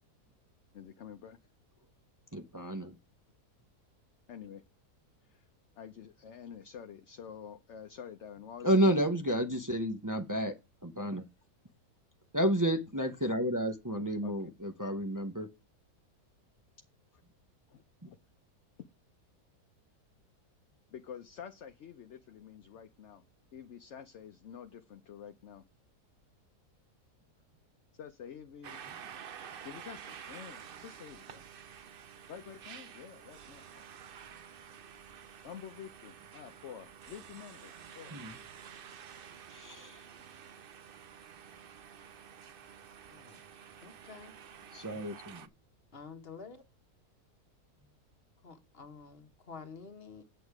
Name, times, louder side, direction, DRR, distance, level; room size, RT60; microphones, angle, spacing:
voice 1, 0.7-1.4 4.3-4.6 5.2-5.4 5.8-9.1 14.2-14.5 17.1-17.2 17.7-18.2 20.9-23.2 23.5-25.6 27.9-28.8 29.6-31.5 32.3-33.8 35.4-38.2, left 8 dB, 55° left, 0.9 m, -48 dB
voice 2, 2.3-3.0 8.6-10.5 10.8-11.2 12.3-15.5 38.1-38.4 39.5-40.0 44.7-45.5, right 1 dB, 15° right, 0.7 m, -31 dB
sound 1, 28.6-45.5, right 8 dB, 55° right, 0.6 m, -50 dB
voice 3, 43.1-43.4 43.8-44.3 45.9-46.6 48.4-50.2, left 5 dB, 40° left, 1.4 m, -49 dB
8.6 x 7.9 x 4.8 m
omnidirectional pair, 1.7 m